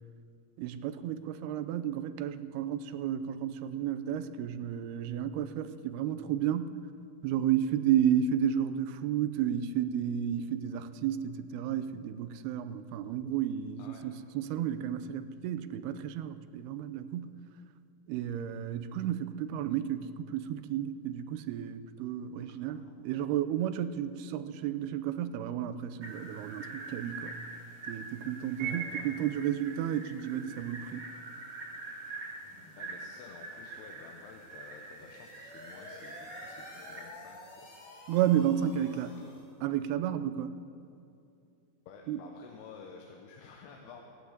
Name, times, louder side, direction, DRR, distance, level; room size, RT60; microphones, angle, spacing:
voice 1, 0.6-6.8 7.2-17.4 18.1-27.4 27.9-31.0 38.1-39.1 39.6-40.6 42.1-42.2, right 10 dB, 85° right, 12 dB, 2.7 m, -32 dB
voice 2, 13.8-14.1 22.5-22.9 28.6-29.2 32.8-37.6 38.8-39.4 41.9-44.0, left 5 dB, 90° left, 1 dB, 3.1 m, -52 dB
sound 1, 26.0-37.0, right 4 dB, 50° right, 3.9 m, -43 dB
sound 2, 34.8-39.6, left 2 dB, 40° left, 1.9 m, -51 dB
16.5 x 10.0 x 8.1 m, 2.5 s
omnidirectional pair, 4.5 m